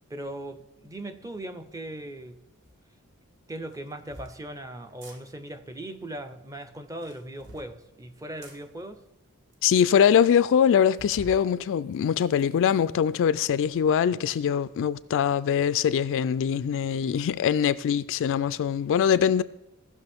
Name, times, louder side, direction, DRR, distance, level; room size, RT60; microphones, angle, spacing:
voice 1, 0.1-2.4 3.5-9.0, right 1 dB, 15° right, 0.6 m, -39 dB
sound 1, 2.6-2.8 3.7-4.4 4.9-5.2 6.8-7.7 8.4-8.6 9.2-9.3 9.5-9.6 10.0-10.1 11.0-11.4 11.9-12.8, right 1 dB, 55° right, 1.3 m, -46 dB
voice 2, 9.6-19.4, left 8 dB, 60° left, 0.3 m, -23 dB
17.0 x 6.1 x 3.5 m
head